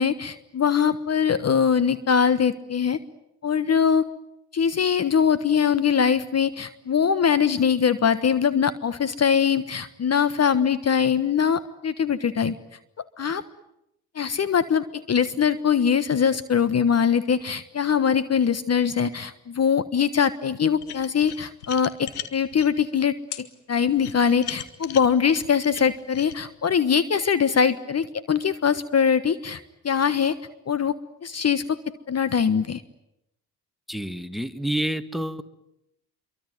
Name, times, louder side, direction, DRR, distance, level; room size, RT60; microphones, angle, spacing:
voice 1, 0.0-3.0 3.4-4.1 4.5-12.6 13.2-13.4 14.1-30.3 30.7-30.9 31.2-31.8 32.1-32.8, left 7 dB, 35° left, 14 dB, 1.3 m, -22 dB
sound 1, 20.8-22.7 23.3-23.4 24.0-26.4, left 11 dB, 85° left, 1.6 m, -37 dB
voice 2, 33.9-35.4, right 1 dB, ahead, 12 dB, 1.9 m, -28 dB
26.5 x 24.0 x 9.3 m, 0.83 s
hypercardioid pair, 55°, 44 cm